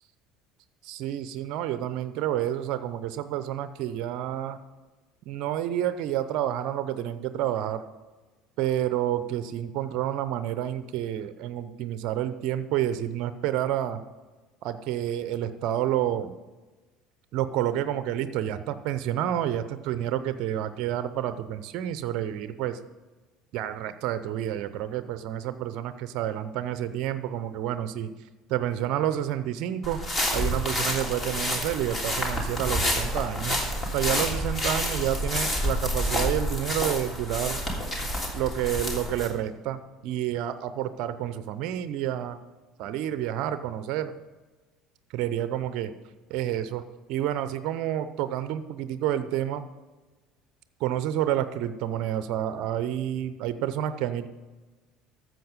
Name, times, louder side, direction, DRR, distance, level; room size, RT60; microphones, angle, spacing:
voice 1, 0.9-4.6 5.3-7.8 8.6-14.0 14.6-16.3 17.3-22.8 23.5-28.1 28.5-30.0 30.3-37.6 38.3-42.4 42.8-44.1 45.1-45.9 46.3-49.7 50.8-54.3, right 11 dB, 60° right, 12 dB, 0.7 m, -29 dB
sound 1, 29.8-39.3, equal, 30° left, 3.1 m, -28 dB
13.5 x 7.6 x 5.2 m, 1.2 s
figure-of-eight pair, 65°, 0 cm